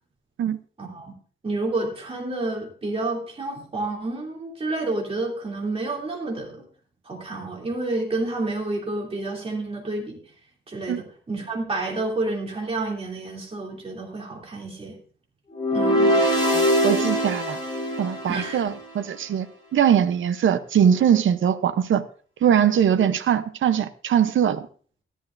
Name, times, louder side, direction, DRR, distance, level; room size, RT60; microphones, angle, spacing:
voice 1, 0.8-1.1 1.4-6.6 7.1-10.2 10.7-15.0 15.7-16.1 18.3-18.6, right 2 dB, 30° right, -1 dB, 2.8 m, -29 dB
sound 1, 15.5-18.8, equal, 20° left, 3.1 m, -22 dB
voice 2, 15.9-17.6 18.0-19.5 19.7-22.0 22.4-24.7, right 8 dB, 80° right, 11 dB, 0.7 m, -21 dB
13.5 x 11.0 x 2.5 m, 0.44 s
wide cardioid pair, 175°, 20 cm